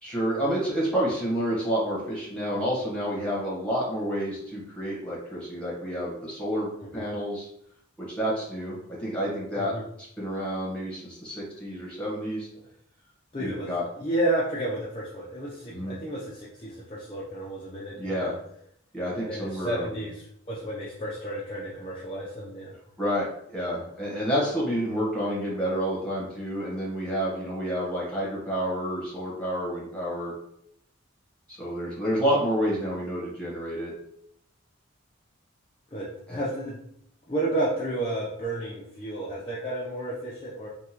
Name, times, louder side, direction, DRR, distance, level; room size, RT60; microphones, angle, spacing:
voice 1, 0.0-7.5 8.0-9.7 10.2-12.5 13.4-13.8 15.7-16.0 18.0-18.3 18.9-20.0 23.0-30.3 31.5-33.9 36.3-36.4, equal, 5° left, -6 dB, 1.0 m, -29 dB
voice 2, 13.3-18.3 19.2-22.7 35.9-36.8 37.3-40.7, right 1 dB, 25° left, -6 dB, 0.4 m, -32 dB
3.6 x 2.3 x 2.9 m, 0.72 s
head